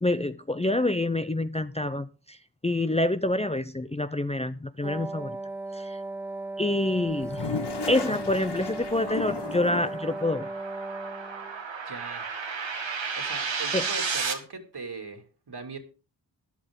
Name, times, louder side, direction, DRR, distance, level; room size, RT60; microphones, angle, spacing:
voice 1, 0.0-2.4 2.6-5.4 5.7-6.0 6.6-7.5 7.9-10.5 13.7-13.9, left 1 dB, 15° left, 0.6 m, -27 dB
Wind instrument woodwind instrument, 4.8-11.6, right 2 dB, 5° right, 0.9 m, -36 dB
Toilet flush, 7.1-10.2, left 4 dB, 65° left, 1.3 m, -35 dB
sound 1, 7.5-14.3, right 5 dB, 85° right, 1.9 m, -34 dB
voice 2, 11.8-12.3 13.2-15.8, right 3 dB, 60° right, 2.7 m, -39 dB
13.0 x 11.0 x 3.7 m
wide cardioid pair, 80°, 44 cm